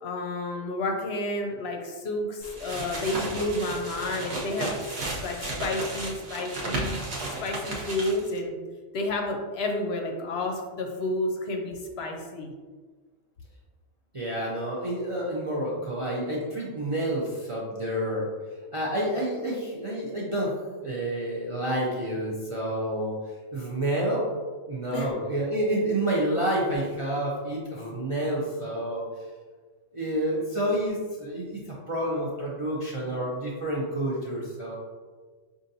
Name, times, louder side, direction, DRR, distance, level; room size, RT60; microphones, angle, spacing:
voice 1, 0.0-4.7 5.2-7.0 7.3-8.6 8.9-12.5 24.9-25.1, left 2 dB, 65° left, 3 dB, 0.8 m, -30 dB
sound 1, 2.4-8.4, right 2 dB, 60° right, 1.0 m, -34 dB
voice 2, 14.1-18.3 18.7-20.6 20.8-23.1 23.5-24.3 24.6-29.1 29.9-31.6 31.9-34.7, right 1 dB, 40° right, -6 dB, 0.4 m, -29 dB
5.4 x 2.5 x 2.6 m, 1.4 s
omnidirectional pair, 1.2 m